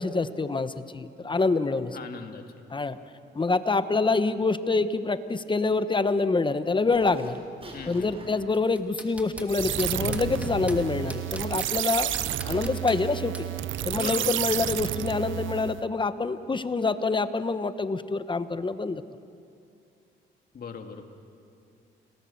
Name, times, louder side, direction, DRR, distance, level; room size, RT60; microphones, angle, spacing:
voice 1, 0.0-2.0 2.7-3.0 3.3-7.4 7.8-12.1 12.4-13.5 13.8-19.0, left 3 dB, 25° left, 12 dB, 1.0 m, -26 dB
voice 2, 1.9-2.4 7.7-8.1 14.0-14.3 20.5-21.0, left 6 dB, 50° left, 5 dB, 2.4 m, -38 dB
Zipper (clothing), 6.0-6.1 6.9-7.3 7.6-8.4 9.1-10.9 11.6-12.6 13.6-15.1, right 1 dB, 30° right, 5.7 m, -40 dB
sound 1, 8.5-9.5 9.8-10.8 11.1-11.7 12.1-13.0 13.3-13.5, right 1 dB, 5° right, 2.9 m, -41 dB
sound 2, 9.5-15.8, right 14 dB, 75° right, 0.6 m, -31 dB
30.0 x 20.0 x 7.1 m, 2.4 s
cardioid pair, 90°, 20 cm